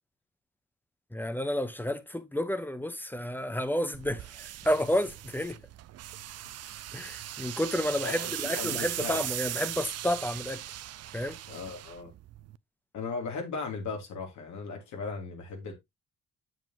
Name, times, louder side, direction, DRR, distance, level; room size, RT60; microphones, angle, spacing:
voice 1, 1.1-5.6 6.9-10.6 11.1-11.4, equal, 5° left, 1.0 m, -31 dB
sound 1, 3.9-12.6, right 13 dB, 55° right, 0.5 m, -39 dB
voice 2, 8.0-9.2 11.5-12.1 12.9-15.7, left 4 dB, 70° left, 3.0 m, -37 dB
7.9 x 7.2 x 2.9 m
cardioid pair, 90°, 30 cm